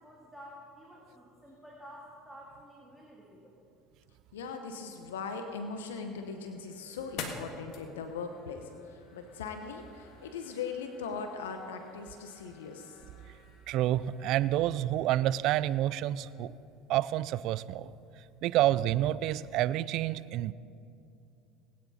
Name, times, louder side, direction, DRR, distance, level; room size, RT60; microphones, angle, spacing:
voice 1, 0.0-3.6, equal, ahead, -3 dB, 2.3 m, -51 dB
voice 2, 4.3-13.0, left 5 dB, 90° left, 6 dB, 0.9 m, -40 dB
sound 1, 5.5-16.5, left 4 dB, 60° left, 1.8 m, -50 dB
voice 3, 13.7-16.5 16.9-17.9 18.4-20.5, right 13 dB, 60° right, 18 dB, 0.4 m, -28 dB
20.5 x 9.5 x 4.2 m, 2.6 s
hypercardioid pair, 80°, 0 cm